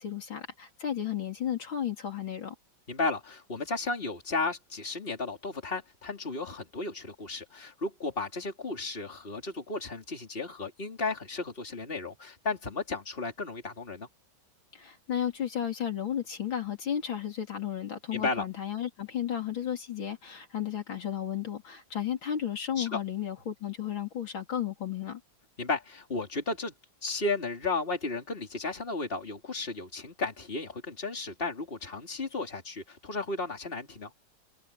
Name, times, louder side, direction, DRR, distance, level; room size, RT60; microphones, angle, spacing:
voice 1, 0.0-2.5 14.7-25.2, left 9 dB, 75° left, 4.0 m, -33 dB
voice 2, 2.9-14.1 18.1-18.5 22.8-23.0 25.6-26.7 27.0-34.1, left 3 dB, 25° left, 3.5 m, -34 dB
omnidirectional pair, 2.2 m